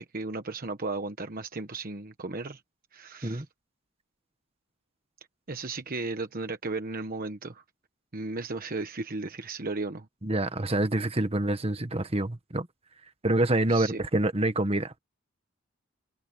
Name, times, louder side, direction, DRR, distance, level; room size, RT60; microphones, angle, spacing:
voice 1, 0.0-2.6 2.9-3.4 5.5-7.6 8.1-10.1 13.7-14.0, right 3 dB, 45° right, 1.2 m, -35 dB
voice 2, 10.2-12.7 13.2-15.0, right 2 dB, 30° right, 1.5 m, -26 dB
head